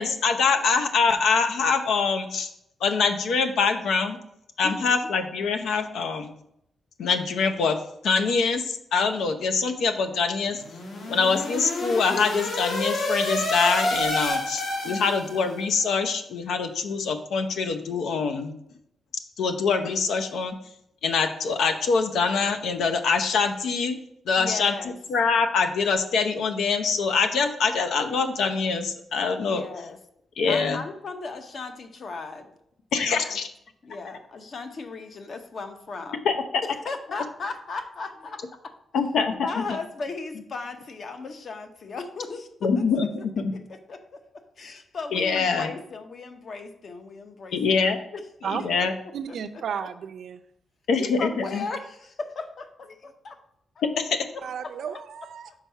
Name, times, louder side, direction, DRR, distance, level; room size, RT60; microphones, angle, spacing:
voice 1, 0.0-2.5 2.8-4.2 4.6-6.3 7.0-7.8 8.0-10.6 11.1-18.5 19.4-20.5 21.0-24.0 24.3-24.7 25.1-29.6 30.4-30.8 32.9-33.5 36.2-36.3 38.9-39.5 42.6-43.1 43.4-43.5 45.1-45.7 47.5-48.0 48.6-48.9 50.9-51.6 53.8-54.2, left 5 dB, 85° left, 7 dB, 0.7 m, -24 dB
voice 2, 4.6-5.1 14.8-15.3 24.4-25.0 29.5-30.0 30.4-32.5 32.9-33.4 33.8-36.2 36.6-38.4 39.3-42.8 43.5-44.2 44.6-48.3 51.0-53.4 54.3-54.7 55.5-55.6, left 4 dB, 40° left, 7 dB, 0.7 m, -37 dB
sound 1, 10.6-15.6, left 2 dB, 60° left, 1.6 m, -29 dB
voice 3, 49.1-50.4 54.4-55.5, right 7 dB, 65° right, 8 dB, 0.5 m, -33 dB
5.8 x 4.7 x 5.6 m, 0.77 s
wide cardioid pair, 170°, 0 cm